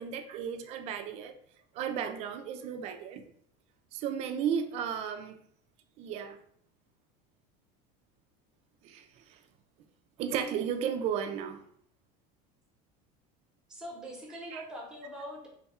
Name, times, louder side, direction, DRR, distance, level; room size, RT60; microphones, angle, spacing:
voice 1, 0.0-1.3 1.7-3.2 3.9-5.4 6.0-6.4 8.8-9.4 10.2-11.6 14.5-14.6, right 8 dB, 35° right, 7 dB, 0.4 m, -34 dB
voice 2, 13.7-15.5, equal, 5° right, -2 dB, 0.8 m, -42 dB
3.9 x 2.3 x 4.1 m, 0.64 s
cardioid pair, 170°, 20 cm